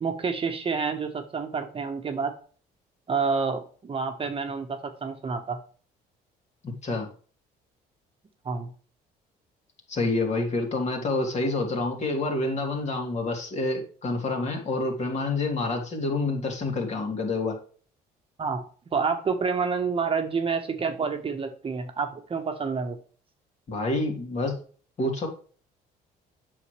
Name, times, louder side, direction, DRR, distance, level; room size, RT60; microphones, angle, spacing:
voice 1, 0.0-2.3 3.1-5.6 8.4-8.7 18.4-18.6 18.9-23.0, right 5 dB, 35° right, 6 dB, 1.2 m, -28 dB
voice 2, 6.6-7.1 9.9-17.6 23.7-24.6 25.0-25.3, left 2 dB, 40° left, 2 dB, 2.8 m, -28 dB
8.3 x 6.4 x 3.3 m, 0.42 s
cardioid pair, 110°, 17 cm